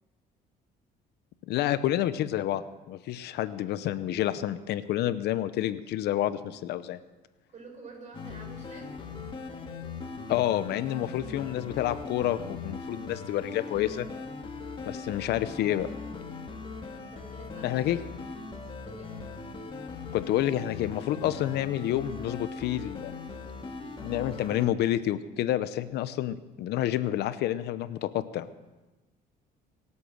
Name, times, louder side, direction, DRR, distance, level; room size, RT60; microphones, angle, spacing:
voice 1, 1.5-7.0 10.3-14.1 14.9-15.9 17.6-18.0 20.1-23.2 24.0-28.5, left 12 dB, 75° left, 13 dB, 0.8 m, -29 dB
voice 2, 7.5-8.9 11.2-11.6 14.8-15.1 17.0-18.1 18.9-19.3, right 3 dB, 45° right, 0 dB, 6.8 m, -49 dB
sound 1, 8.1-24.7, left 4 dB, 30° left, 2.1 m, -40 dB
24.5 x 8.5 x 6.4 m, 1.1 s
cardioid pair, 110°, 17 cm